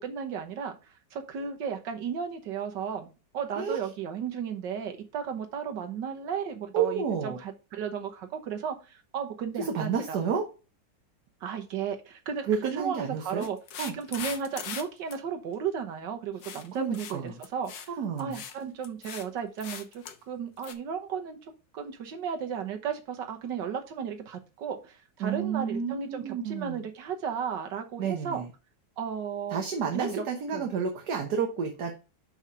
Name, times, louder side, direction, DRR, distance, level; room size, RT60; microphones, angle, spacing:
voice 1, 0.0-3.1 3.3-10.2 11.4-17.9 18.2-28.4 29.0-29.6 29.9-30.2 30.5-30.7, right 7 dB, 80° right, 1.8 m, -34 dB
voice 2, 6.7-7.4 9.7-10.5 12.5-13.5 13.8-13.9 16.7-17.4 18.0-18.3 25.2-26.8 28.0-28.5 29.5-31.9, right 6 dB, 65° right, 1.6 m, -30 dB
sound 1, 13.4-14.8 15.1-15.2 16.4-16.7 16.9-17.2 17.4-17.9 18.2-18.6 18.8-19.2 19.6-20.2 20.6-20.7, left 8 dB, 85° left, 1.6 m, -40 dB
5.7 x 5.6 x 4.8 m
omnidirectional pair, 1.9 m